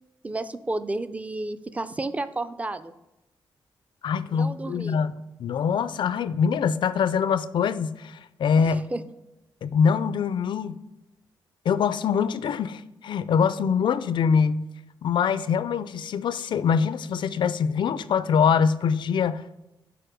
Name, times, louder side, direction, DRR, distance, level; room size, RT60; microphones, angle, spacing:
voice 1, 0.2-2.9 4.3-5.0 8.6-9.0, right 2 dB, 15° right, 0.4 m, -32 dB
voice 2, 4.0-8.8 9.6-10.7 11.7-14.7 15.0-19.4, left 6 dB, 70° left, 0.3 m, -24 dB
6.8 x 4.6 x 5.0 m
cardioid pair, 100°, 8 cm